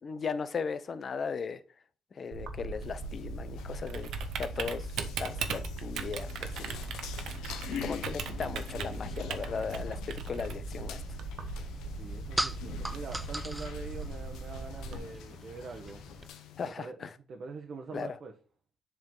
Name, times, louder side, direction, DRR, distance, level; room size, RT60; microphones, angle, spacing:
voice 1, 0.0-1.6 2.1-4.1 4.4-6.9 7.2-7.5 7.8-11.0 16.6-17.1 17.9-18.1, left 5 dB, 45° left, 0.7 m, -37 dB
Typing, 2.3-15.0, right 3 dB, 75° right, 0.9 m, -38 dB
sound 1, 2.8-16.7, left 9 dB, 90° left, 0.8 m, -46 dB
sound 2, 10.8-16.3, right 1 dB, 5° right, 0.3 m, -40 dB
voice 2, 11.9-16.0 16.8-17.0 17.3-18.3, right 4 dB, 55° right, 1.1 m, -43 dB
7.6 x 3.8 x 3.8 m
cardioid pair, 90°, 0 cm